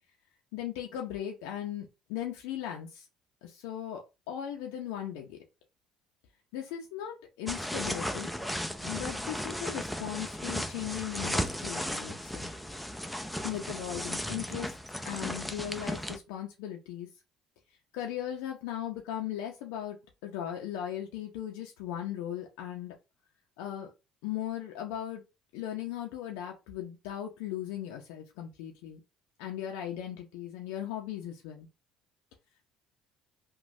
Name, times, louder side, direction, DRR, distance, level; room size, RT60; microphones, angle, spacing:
voice 1, 0.5-3.1 3.4-5.4 6.5-8.3 8.8-12.5 13.4-14.7 15.1-17.1 17.9-20.0 20.2-22.9 23.6-23.9 24.2-25.2 25.5-29.0 29.4-31.7, left 11 dB, 80° left, 1 dB, 0.5 m, -38 dB
sound 1, 7.5-16.2, equal, ahead, 0.4 m, -35 dB
3.0 x 2.2 x 2.6 m, 0.26 s
supercardioid pair, 80°, 0 cm